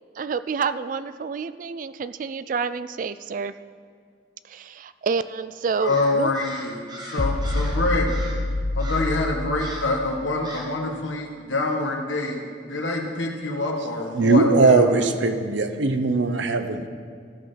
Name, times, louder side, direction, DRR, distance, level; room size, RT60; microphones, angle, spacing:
voice 1, 0.2-3.5 4.5-6.3, right 5 dB, 45° right, 14 dB, 0.3 m, -28 dB
voice 2, 5.8-6.7 7.0-8.1 8.7-14.9, left 2 dB, 90° left, 1 dB, 1.5 m, -26 dB
Crow, 5.8-7.8 8.1-8.5 8.8-9.2 9.6-10.0 10.4-10.8, right 1 dB, 20° right, 1.3 m, -40 dB
sound 1, 7.2-10.6, left 2 dB, 35° left, 0.4 m, -27 dB
voice 3, 14.1-16.9, right 3 dB, 80° right, 8 dB, 0.8 m, -19 dB
15.0 x 5.6 x 5.7 m, 2.1 s
head